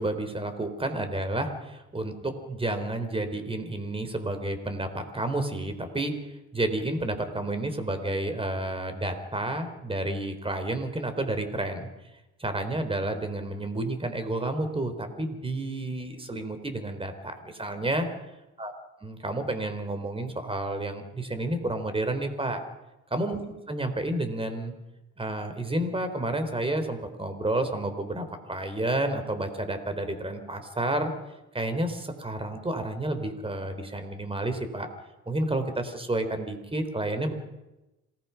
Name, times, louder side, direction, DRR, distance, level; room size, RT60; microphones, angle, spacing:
voice 1, 0.0-6.2 6.5-11.9 12.4-18.1 18.6-18.7 19.0-22.6 23.1-23.4 23.7-24.7 25.2-31.1 31.5-34.9 35.3-37.3, right 1 dB, 20° right, 8 dB, 4.0 m, -30 dB
27.0 x 19.5 x 5.9 m, 0.99 s
cardioid pair, 90°, 30 cm